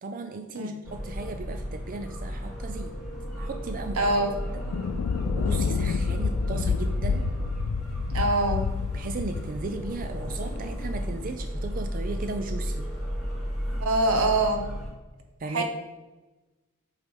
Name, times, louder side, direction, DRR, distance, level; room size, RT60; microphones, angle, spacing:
voice 1, 0.0-2.9 3.4-4.0 5.4-7.2 8.9-12.9 15.4-15.6, right 3 dB, 40° right, 6 dB, 0.4 m, -36 dB
sound 1, 0.8-14.9, equal, ahead, 2.4 m, -34 dB
voice 2, 4.0-4.4 8.1-8.7 13.8-14.6 15.5-15.6, right 2 dB, 90° right, 5 dB, 1.0 m, -24 dB
Thunder, 4.5-11.2, left 5 dB, 80° left, 0.3 m, -29 dB
8.1 x 3.3 x 5.3 m, 1.2 s
head